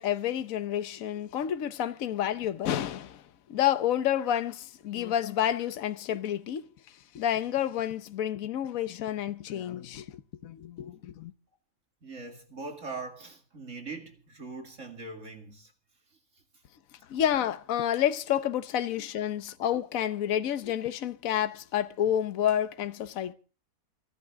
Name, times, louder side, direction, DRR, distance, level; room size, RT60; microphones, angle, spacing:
voice 1, 0.0-3.2 3.5-6.6 7.1-10.1 10.4-11.3 17.1-23.3, left 10 dB, 60° left, 1.3 m, -29 dB
voice 2, 12.0-15.7, right 3 dB, 50° right, 2.5 m, -41 dB
29.0 x 11.5 x 3.6 m
omnidirectional pair, 1.7 m